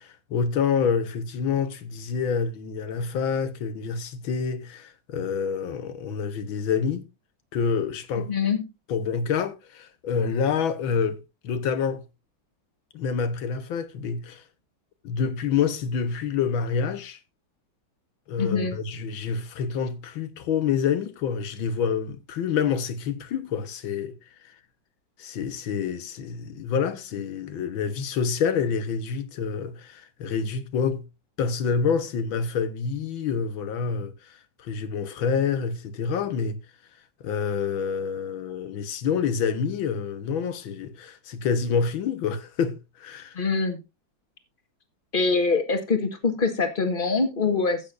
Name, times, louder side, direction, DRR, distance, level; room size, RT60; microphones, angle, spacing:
voice 1, 0.0-7.0 7.5-8.3 8.9-11.2 11.4-12.0 12.9-14.4 15.0-17.2 18.3-24.2 25.2-31.1 31.4-36.6 37.2-43.4, left 6 dB, 80° left, 1.9 m, -27 dB
voice 2, 8.3-8.7 18.4-18.7 43.3-43.8 45.1-47.8, left 4 dB, 30° left, 1.4 m, -24 dB
14.5 x 8.6 x 2.5 m
omnidirectional pair, 2.2 m